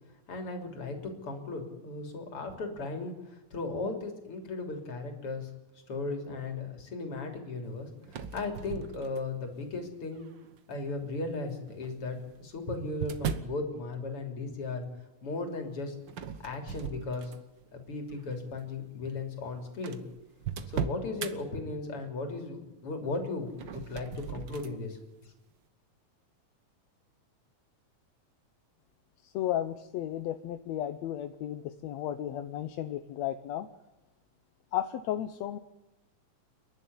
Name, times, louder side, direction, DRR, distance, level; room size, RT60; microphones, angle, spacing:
voice 1, 0.3-5.5 5.9-10.3 10.7-14.8 15.2-16.0 16.4-17.3 17.7-20.0 20.7-25.3, left 3 dB, 45° left, 5 dB, 4.1 m, -36 dB
sound 1, 8.0-9.5 10.2-10.6 11.7-13.6 16.1-17.6 18.1-18.4 19.1-19.2 19.4-19.5 19.8-21.3 23.5-24.8, right 7 dB, 60° right, 1.2 m, -38 dB
voice 2, 29.2-33.7 34.7-35.6, left 12 dB, 70° left, 9 dB, 1.9 m, -34 dB
29.5 x 11.5 x 9.6 m, 1.0 s
omnidirectional pair, 3.6 m